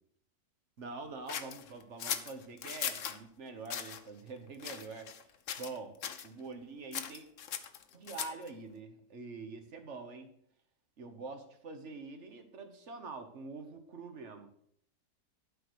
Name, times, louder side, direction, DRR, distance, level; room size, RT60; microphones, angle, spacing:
voice 1, 0.8-5.1 5.6-7.3 7.9-10.3 11.0-14.5, right 3 dB, 50° right, 6 dB, 1.4 m, -45 dB
sound 1, 1.3-3.2 3.7-4.0 4.6-5.2 5.5-5.8 6.0-6.3 6.9-8.5, left 8 dB, 60° left, 1.0 m, -39 dB
11.5 x 4.7 x 6.3 m, 0.67 s
omnidirectional pair, 1.6 m